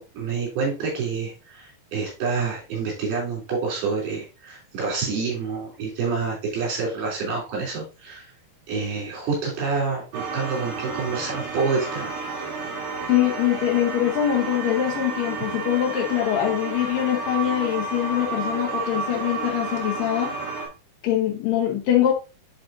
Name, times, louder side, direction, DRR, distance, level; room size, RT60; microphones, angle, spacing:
voice 1, 0.0-8.3 8.7-12.1, right 4 dB, 70° right, -3 dB, 5.3 m, -28 dB
sound 1, 10.1-20.7, right 4 dB, 55° right, 3.2 m, -31 dB
voice 2, 13.1-20.3 21.0-22.1, left 11 dB, 65° left, -1 dB, 2.6 m, -23 dB
11.0 x 4.3 x 2.7 m, 0.29 s
omnidirectional pair, 4.7 m